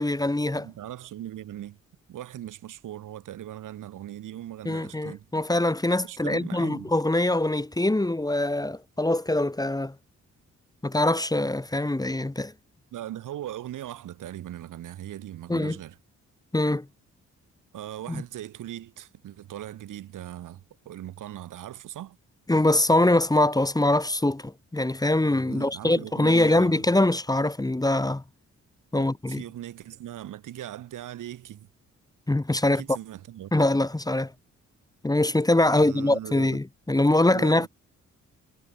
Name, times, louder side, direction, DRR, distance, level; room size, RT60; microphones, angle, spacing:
voice 1, 0.0-0.7 4.6-9.9 10.8-12.5 15.5-15.8 16.5-16.8 18.1-18.2 22.5-28.2 28.9-29.4 32.3-32.8 33.5-34.3 35.0-37.7, left 1 dB, 10° left, 1.5 m, -23 dB
voice 2, 0.5-1.8 2.1-5.3 6.0-6.9 12.9-16.0 17.7-22.2 25.5-26.8 28.9-31.7 32.7-33.5 35.7-36.6 37.3-37.7, right 12 dB, 90° right, 3.9 m, -39 dB
cardioid pair, 80°, 30 cm